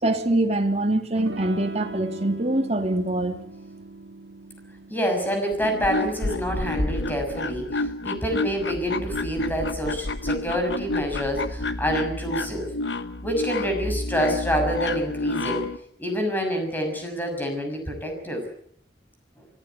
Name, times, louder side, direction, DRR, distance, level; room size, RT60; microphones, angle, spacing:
voice 1, 0.0-3.4, right 1 dB, 40° right, 4 dB, 2.8 m, -24 dB
Electric guitar / Strum, 1.2-6.5, right 2 dB, 85° right, 2.7 m, -40 dB
voice 2, 4.9-12.7 13.2-15.6 16.0-18.4, equal, 10° left, 4 dB, 6.5 m, -27 dB
sound 1, 5.5-15.8, left 2 dB, 85° left, 1.3 m, -29 dB
24.0 x 15.0 x 9.6 m, 0.68 s
head